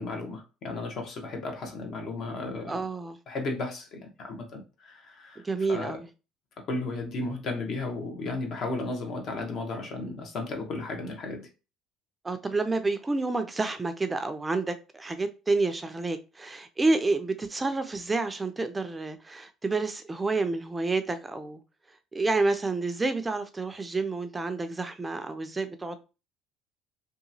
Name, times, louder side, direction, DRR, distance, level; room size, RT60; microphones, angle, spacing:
voice 1, 0.0-2.8 3.3-5.4 5.7-6.0 6.7-11.5, left 2 dB, 55° left, 0.9 m, -34 dB
voice 2, 2.7-3.2 5.4-6.1 12.2-21.6 22.1-26.0, right 3 dB, 20° right, 0.4 m, -29 dB
2.8 x 2.3 x 2.6 m
supercardioid pair, 90°, 0 cm